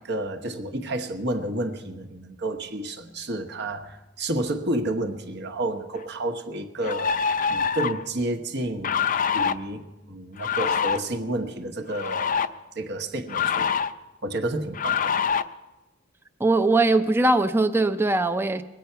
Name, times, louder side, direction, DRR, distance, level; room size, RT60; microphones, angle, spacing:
voice 1, 0.0-9.0 9.3-12.5 12.7-13.7 14.2-15.1, right 1 dB, 60° right, 1.1 m, -30 dB
sound 1, 5.9-6.0 6.8-8.0 8.8-9.5 10.4-11.0 11.9-12.5 13.3-13.9 14.7-15.4, left 6 dB, 45° left, 0.5 m, -25 dB
voice 2, 16.4-18.6, right 2 dB, 10° right, 0.4 m, -21 dB
22.0 x 8.6 x 5.6 m
head